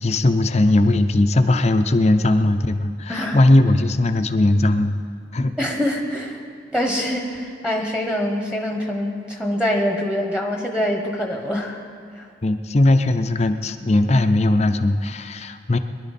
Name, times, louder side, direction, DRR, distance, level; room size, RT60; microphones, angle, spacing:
voice 1, 0.0-5.0 5.3-5.5 12.4-15.8, left 2 dB, 35° left, 9 dB, 0.5 m, -18 dB
voice 2, 3.1-3.4 5.6-6.4 6.7-11.8 12.1-12.3, equal, 5° right, 1 dB, 1.1 m, -24 dB
21.0 x 11.0 x 4.2 m, 2.2 s
head